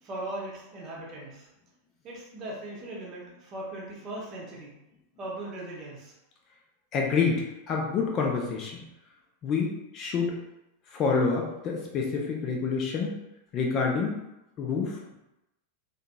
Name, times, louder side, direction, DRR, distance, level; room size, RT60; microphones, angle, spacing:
voice 1, 0.0-1.5 2.0-4.7 5.2-6.1, right 1 dB, 35° right, -3 dB, 0.8 m, -39 dB
voice 2, 6.9-8.8 9.4-10.3 10.9-13.2 13.5-14.2 14.6-15.2, left 5 dB, 35° left, 0 dB, 0.5 m, -28 dB
2.7 x 2.7 x 2.2 m, 0.91 s
figure-of-eight pair, 90°, 0 cm